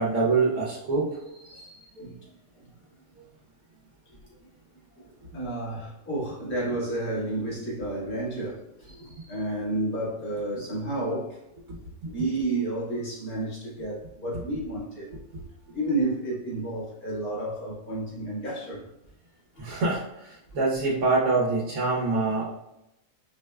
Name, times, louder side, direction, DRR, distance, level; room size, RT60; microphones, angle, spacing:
voice 1, 0.0-1.8 9.0-9.3 15.3-15.4 19.6-22.5, right 3 dB, 90° right, -4 dB, 1.4 m, -26 dB
voice 2, 5.0-11.4 12.0-15.1 15.7-18.9 19.5-19.6, right 2 dB, 90° left, -6 dB, 2.0 m, -31 dB
4.9 x 3.2 x 2.3 m, 0.87 s
omnidirectional pair, 1.5 m